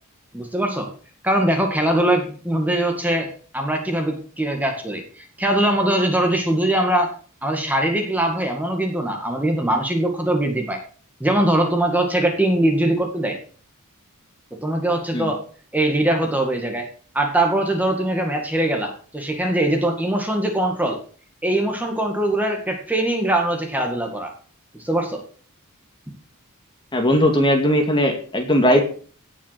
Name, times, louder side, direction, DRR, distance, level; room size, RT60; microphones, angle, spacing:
voice 1, 0.3-0.9 1.2-3.3 3.5-7.1 7.4-10.8 11.2-13.4 14.6-15.4 15.7-16.9 17.1-21.0 21.4-24.3 24.8-25.2, right 1 dB, 5° right, 3 dB, 2.0 m, -21 dB
voice 2, 26.9-28.8, equal, 20° left, 3 dB, 2.3 m, -18 dB
17.5 x 6.3 x 5.9 m, 0.43 s
head